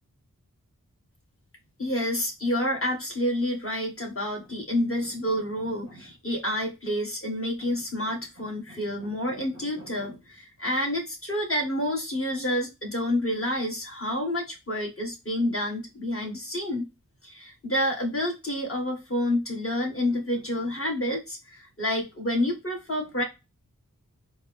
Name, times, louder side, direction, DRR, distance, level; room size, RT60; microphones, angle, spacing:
voice 1, 1.8-16.9 17.2-23.2, left 1 dB, 40° left, 0 dB, 1.9 m, -29 dB
4.2 x 2.3 x 3.6 m, 0.24 s
cardioid pair, 45°, 33 cm